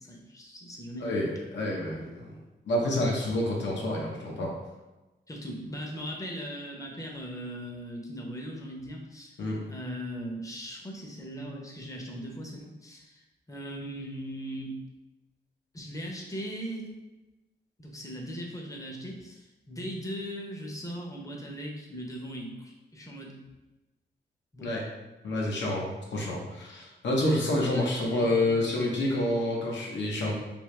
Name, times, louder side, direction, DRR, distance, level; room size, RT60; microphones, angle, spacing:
voice 1, 0.0-1.1 5.3-9.4 9.7-14.8 15.7-16.9 17.8-23.4 24.5-24.7 27.7-28.8, equal, 15° left, 0 dB, 0.6 m, -39 dB
voice 2, 1.0-2.3 2.7-4.5 9.4-9.6 24.6-24.8 25.2-30.3, left 1 dB, 75° left, -3 dB, 0.8 m, -28 dB
3.5 x 2.7 x 3.2 m, 1.1 s
wide cardioid pair, 110°, 19 cm